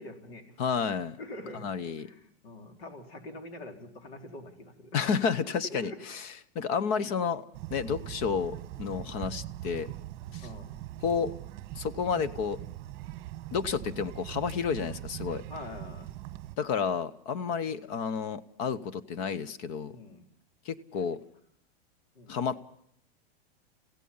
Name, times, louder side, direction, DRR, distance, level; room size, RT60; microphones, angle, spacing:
voice 1, 0.0-0.4 1.2-1.7 2.0-5.3 5.6-6.0 8.0-8.1 10.4-10.8 15.5-16.1 19.9-20.2 21.0-21.1 22.2-22.4, left 2 dB, 70° left, 3 dB, 4.2 m, -44 dB
voice 2, 0.6-1.2 1.5-2.1 4.9-6.3 6.5-7.4 7.7-9.9 10.3-10.5 11.0-11.3 11.8-12.6 13.5-15.4 16.6-19.9 20.7-21.2 22.3-22.6, left 6 dB, 40° left, 15 dB, 0.9 m, -31 dB
sound 1, 7.5-16.6, right 14 dB, 35° right, 1.2 m, -41 dB
29.0 x 16.5 x 5.5 m, 0.71 s
supercardioid pair, 150°, 31 cm